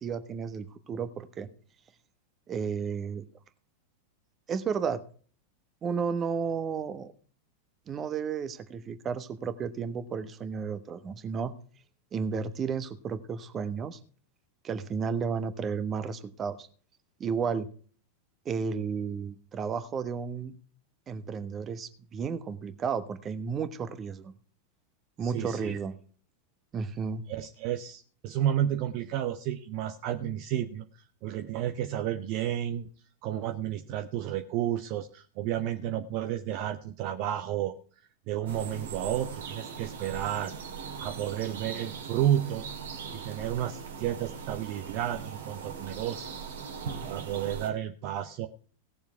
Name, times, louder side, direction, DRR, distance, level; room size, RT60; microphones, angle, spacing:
voice 1, 0.0-1.5 2.5-3.2 4.5-5.0 5.8-7.1 7.9-11.5 12.1-14.0 14.6-16.7 17.2-17.7 18.4-20.5 21.1-24.3 25.2-25.9 26.7-27.2, right 6 dB, 25° right, 12 dB, 1.2 m, -32 dB
voice 2, 25.2-25.7 27.3-32.9 33.2-37.7 38.3-40.5 41.0-42.7 43.1-46.3 47.0-48.5, right 11 dB, 40° right, 8 dB, 0.7 m, -31 dB
sound 1, 38.5-47.7, right 6 dB, 65° right, 2.0 m, -40 dB
17.5 x 7.1 x 4.6 m, 0.43 s
figure-of-eight pair, 90°, 0 cm